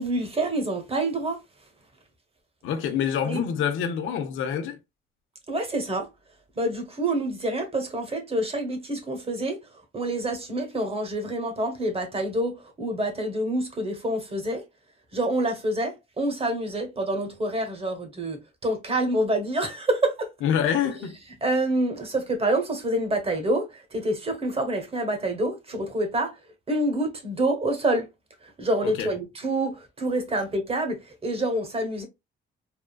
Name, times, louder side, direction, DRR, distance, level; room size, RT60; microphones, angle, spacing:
voice 1, 0.0-1.4 3.2-3.4 5.5-6.1 6.5-14.6 15.1-20.3 20.9-21.1 21.4-26.4 26.7-28.1 28.4-32.1, right 1 dB, 30° right, 1.3 m, -27 dB
voice 2, 2.6-4.8 20.4-21.2 29.0-29.1, left 8 dB, 90° left, 0.8 m, -26 dB
3.6 x 2.3 x 2.4 m
cardioid pair, 90°, 20 cm